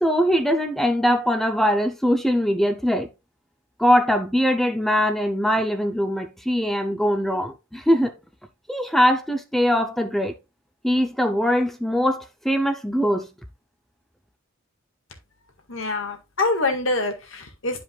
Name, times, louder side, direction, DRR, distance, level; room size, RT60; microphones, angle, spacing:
voice 1, 0.0-3.1 3.8-8.1 8.7-10.3 10.8-13.3, equal, ahead, 0.6 m, -21 dB
voice 2, 15.7-17.8, left 2 dB, 75° left, 1.8 m, -25 dB
11.0 x 5.1 x 2.4 m
head